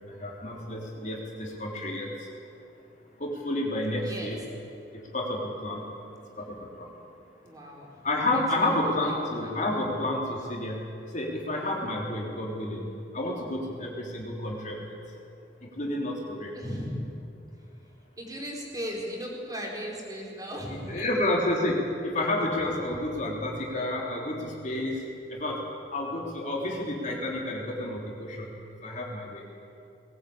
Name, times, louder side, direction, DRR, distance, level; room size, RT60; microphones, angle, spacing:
voice 1, 0.2-2.3 3.2-4.4 5.1-5.8 6.4-6.9 8.0-10.8 11.1-14.9 15.8-16.5 20.7-25.6 25.9-28.5 28.8-29.4, left 1 dB, 45° left, -2 dB, 3.6 m, -30 dB
voice 2, 1.6-2.1 4.0-4.3 7.4-8.1 8.3-9.8 16.5-17.0 17.6-17.7 18.2-21.1, equal, 20° right, -2 dB, 4.7 m, -38 dB
21.0 x 18.5 x 8.6 m, 2.6 s
head